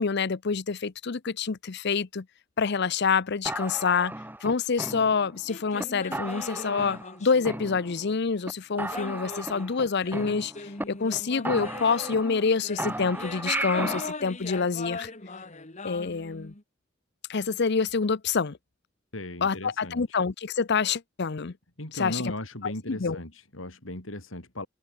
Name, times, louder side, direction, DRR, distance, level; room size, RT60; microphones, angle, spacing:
voice 1, 0.0-2.3 2.6-4.1 4.4-15.1 15.8-16.5 17.3-18.6 19.4-21.5 21.9-22.3 22.6-23.2, left 5 dB, 60° left, 0.7 m, -27 dB
sound 1, 3.5-5.4 5.8-5.9 6.1-7.2 7.5-8.2 8.5-8.6 8.8-10.8 11.1-11.2 11.5-12.5 12.8-14.1, right 1 dB, 10° right, 2.9 m, -35 dB
sound 2, 5.5-8.2 8.9-16.6, left 3 dB, 35° left, 2.6 m, -40 dB
voice 2, 19.1-20.2 21.8-24.7, left 1 dB, 85° left, 4.8 m, -37 dB
head